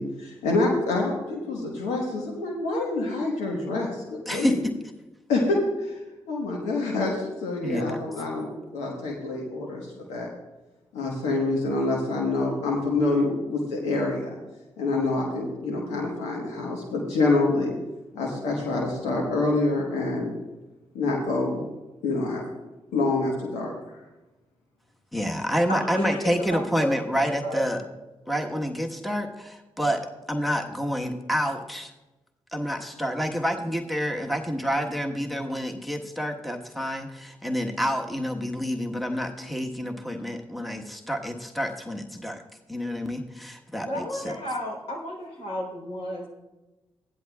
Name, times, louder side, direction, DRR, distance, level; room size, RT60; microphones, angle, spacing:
voice 1, 0.0-4.5 5.3-6.0 6.3-10.3 10.9-14.3 14.8-17.7 18.1-20.3 20.9-21.6 22.0-22.4 22.9-24.0, left 2 dB, 85° left, -2 dB, 1.3 m, -26 dB
voice 2, 4.3-4.7 7.6-8.0 25.1-27.8 28.3-30.0 30.3-31.9 32.5-42.4 42.7-44.4, equal, ahead, 3 dB, 1.3 m, -28 dB
voice 3, 25.7-28.0 28.5-28.6 43.8-46.3, equal, 65° left, -1 dB, 3.6 m, -32 dB
15.5 x 10.5 x 2.4 m, 1.1 s
hypercardioid pair, 40°, 11 cm